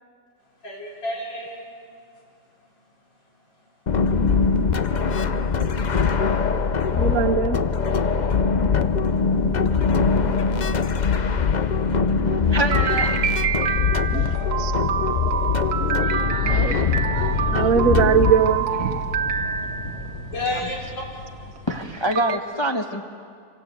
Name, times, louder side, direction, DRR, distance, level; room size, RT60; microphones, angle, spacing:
voice 1, 0.6-1.7 14.3-14.5 15.2-15.8 20.3-20.8 21.1-21.4, left 1 dB, 90° left, -3 dB, 5.9 m, -32 dB
sound 1, 3.9-18.3, left 5 dB, 55° left, 0.4 m, -22 dB
voice 2, 7.0-7.6 14.1-14.2 14.6-14.7 16.4-16.7 17.5-19.0 19.8-19.9, right 7 dB, 55° right, 7 dB, 1.3 m, -21 dB
voice 3, 12.1-13.2 14.2-14.4 16.0-17.7 18.8-19.1 19.4-19.8 20.5-20.7 21.7-23.1, right 1 dB, 20° left, 3 dB, 1.0 m, -29 dB
sound 2, 12.7-20.1 21.6-21.7 22.1-22.4, right 7 dB, 85° right, 1.8 m, -27 dB
Explosion, 16.4-22.0, left 2 dB, 35° left, 2.1 m, -33 dB
27.0 x 26.0 x 8.2 m, 2.2 s
omnidirectional pair, 1.9 m